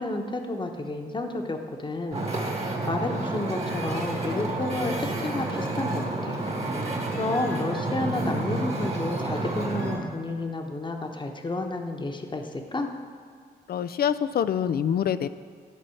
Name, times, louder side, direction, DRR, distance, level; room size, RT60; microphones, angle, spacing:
voice 1, 0.0-2.3 2.8-6.4 7.1-12.9, left 2 dB, 25° left, 4 dB, 1.1 m, -31 dB
Wind / Ocean, 2.1-10.0, right 2 dB, 40° right, 1.7 m, -30 dB
voice 2, 13.7-15.3, left 8 dB, 60° left, 13 dB, 0.4 m, -25 dB
12.0 x 4.2 x 7.1 m, 2.2 s
cardioid pair, 70°, 17 cm